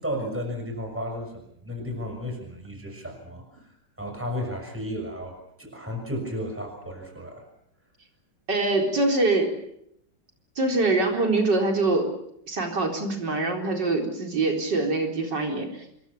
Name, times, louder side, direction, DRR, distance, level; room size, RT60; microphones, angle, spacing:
voice 1, 0.0-7.4, equal, 5° right, 3 dB, 6.3 m, -34 dB
voice 2, 8.5-9.6 10.6-12.1 12.5-15.8, right 2 dB, 75° right, 2 dB, 4.8 m, -24 dB
26.5 x 22.5 x 7.1 m, 0.74 s
omnidirectional pair, 1.9 m